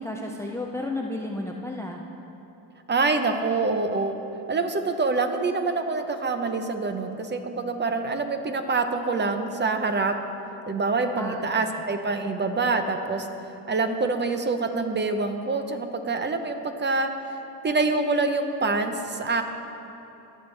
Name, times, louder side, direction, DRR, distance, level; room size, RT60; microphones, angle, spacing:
voice 1, 0.0-2.0 11.1-11.4, left 1 dB, 5° left, 1 dB, 0.4 m, -32 dB
voice 2, 2.9-4.1 4.5-10.2 10.7-13.3 13.7-17.1 17.6-19.4, right 3 dB, 25° right, 7 dB, 0.7 m, -26 dB
17.0 x 6.4 x 3.3 m, 3.0 s
cardioid pair, 95°, 43 cm